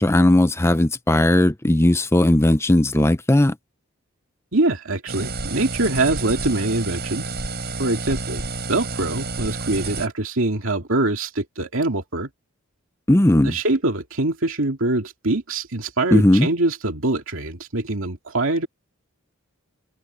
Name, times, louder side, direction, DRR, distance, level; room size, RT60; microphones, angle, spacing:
voice 1, 0.0-3.6 13.1-13.6 16.1-16.5, left 1 dB, 10° left, 0.6 m, -17 dB
voice 2, 4.5-7.4 7.8-8.4 8.7-12.3 13.4-18.7, right 2 dB, 65° right, 2.6 m, -23 dB
sound 1, 5.1-10.1, right 3 dB, 50° right, 6.3 m, -30 dB
open air
head